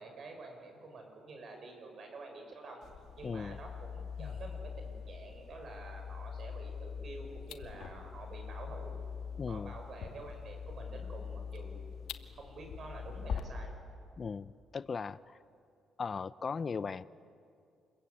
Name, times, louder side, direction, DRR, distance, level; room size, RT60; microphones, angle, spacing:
voice 1, 0.0-2.8 3.2-9.0 9.5-11.8 12.3-13.7, right 3 dB, 55° right, 4 dB, 6.6 m, -48 dB
sound 1, 2.8-13.4, left 6 dB, 70° left, 2.1 m, -43 dB
voice 2, 3.2-3.6 9.4-9.7 14.2-15.4 16.0-17.1, left 5 dB, 40° left, 17 dB, 0.5 m, -38 dB
sound 2, 3.5-12.4, left 11 dB, 85° left, 1.1 m, -56 dB
28.0 x 22.0 x 8.6 m, 2.4 s
cardioid pair, 90°, 0 cm